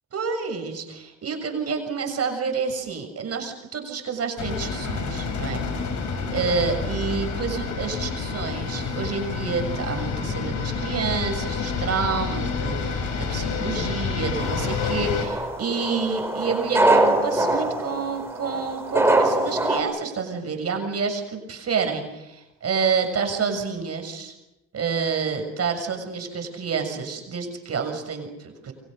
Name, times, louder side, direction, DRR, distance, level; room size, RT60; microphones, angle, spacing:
voice 1, 0.1-5.6 6.3-24.3 24.7-28.7, right 5 dB, 55° right, 5 dB, 6.9 m, -28 dB
sound 1, 4.4-15.3, left 5 dB, 70° left, 5.6 m, -28 dB
sound 2, 14.4-19.8, right 1 dB, 10° right, 5.4 m, -23 dB
29.5 x 24.0 x 6.7 m, 0.96 s
cardioid pair, 90°, 30 cm